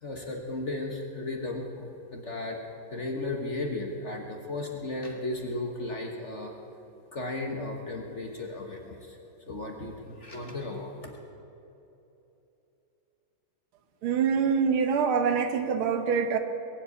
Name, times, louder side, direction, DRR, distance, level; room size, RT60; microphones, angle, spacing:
voice 1, 0.0-2.6 2.9-6.5 7.1-9.2 9.5-11.2, left 2 dB, 40° left, 2 dB, 1.3 m, -35 dB
voice 2, 14.0-16.4, right 6 dB, 75° right, 8 dB, 1.8 m, -25 dB
21.0 x 8.0 x 8.3 m, 3.0 s
omnidirectional pair, 2.4 m